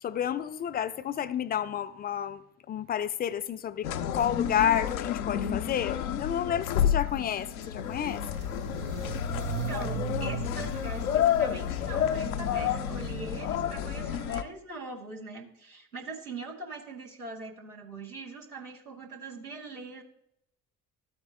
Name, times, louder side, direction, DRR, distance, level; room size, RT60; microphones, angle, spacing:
voice 1, 0.0-2.4 2.7-8.2, left 9 dB, 25° left, 0.3 m, -30 dB
sound 1, 3.8-14.4, left 9 dB, 75° left, 0.6 m, -30 dB
Walk footsteps, 6.0-13.7, right 11 dB, 65° right, 0.7 m, -40 dB
voice 2, 9.5-20.0, right 3 dB, 90° right, 1.0 m, -42 dB
13.0 x 4.3 x 3.2 m
figure-of-eight pair, 50°, 43 cm